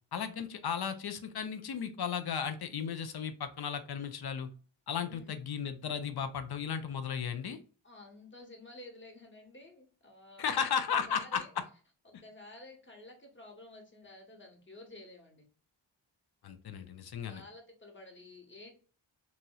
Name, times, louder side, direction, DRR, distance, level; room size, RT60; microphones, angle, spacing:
voice 1, 0.1-4.5 4.9-7.6 10.4-11.5 16.4-17.4, left 7 dB, 50° left, 10 dB, 0.5 m, -35 dB
voice 2, 5.0-5.3 7.8-10.6 10.9-11.5 12.0-15.5 17.3-18.7, left 2 dB, 25° left, 1 dB, 1.0 m, -52 dB
3.0 x 2.8 x 2.2 m, 0.40 s
cardioid pair, 60°, 49 cm